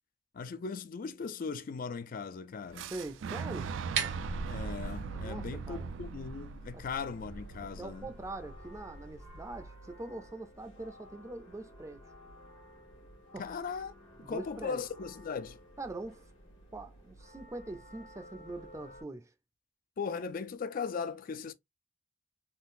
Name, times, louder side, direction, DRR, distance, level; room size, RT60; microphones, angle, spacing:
voice 1, 0.3-2.9 4.4-8.1 13.4-13.9 14.2-15.6 20.0-21.5, left 5 dB, 50° left, 0.4 m, -38 dB
sound 1, 2.7-19.0, equal, 80° left, 1.5 m, -54 dB
Fire / Explosion, 2.7-8.6, right 5 dB, 90° right, 0.4 m, -40 dB
voice 2, 2.9-3.7 5.2-5.9 6.7-6.8 7.8-12.0 13.3-13.4 14.2-14.8 15.8-16.2 16.7-19.3, right 2 dB, 15° right, 0.4 m, -43 dB
sound 2, 3.7-9.6, right 5 dB, 70° right, 0.8 m, -42 dB
3.7 x 2.3 x 2.5 m
head